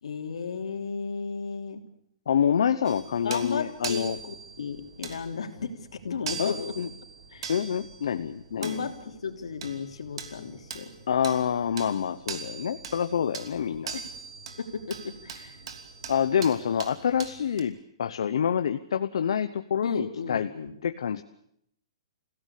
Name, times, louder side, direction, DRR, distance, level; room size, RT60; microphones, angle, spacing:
voice 1, 0.0-1.8 3.2-6.7 7.3-7.5 8.6-10.9 13.9-14.0 14.6-15.6 19.8-20.7, left 5 dB, 90° left, 5 dB, 3.3 m, -34 dB
voice 2, 2.3-4.2 6.4-6.9 7.5-8.9 11.1-13.9 16.1-20.5 20.8-21.2, left 8 dB, 70° left, 10 dB, 1.0 m, -27 dB
sound 1, 2.8-17.6, right 6 dB, 60° right, 3.0 m, -42 dB
28.0 x 16.5 x 8.5 m, 0.73 s
hypercardioid pair, 170°, 3 cm